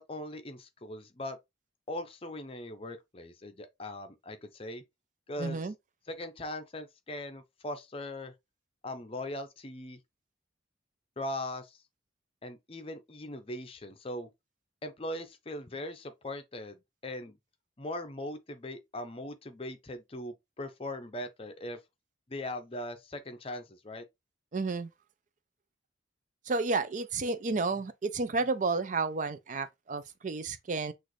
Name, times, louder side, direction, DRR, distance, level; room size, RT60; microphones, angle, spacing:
voice 1, 0.0-1.4 1.9-4.8 5.3-5.6 6.1-8.3 8.8-10.0 11.2-11.8 12.4-14.3 14.8-17.4 17.8-21.8 22.3-24.1, left 1 dB, 30° left, 0.7 m, -40 dB
voice 2, 5.4-5.7 24.5-24.9 26.5-30.9, right 3 dB, 40° right, 0.4 m, -31 dB
6.2 x 2.6 x 3.1 m
head